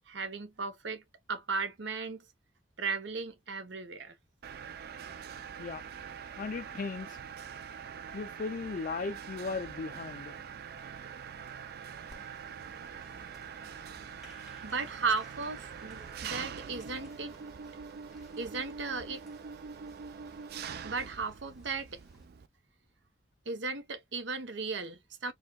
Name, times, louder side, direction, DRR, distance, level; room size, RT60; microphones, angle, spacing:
voice 1, 0.1-1.0 1.3-2.2 2.8-4.1 14.6-17.3 18.4-19.2 20.6-22.0 23.5-25.3, right 4 dB, 75° right, 0.8 m, -36 dB
Mechanisms, 4.4-22.5, right 7 dB, 60° right, 0.4 m, -44 dB
voice 2, 6.4-7.2 8.1-10.4, left 4 dB, 45° left, 0.4 m, -37 dB
Applause, 12.1-22.2, equal, ahead, 1.5 m, -58 dB
4.7 x 2.3 x 2.2 m
head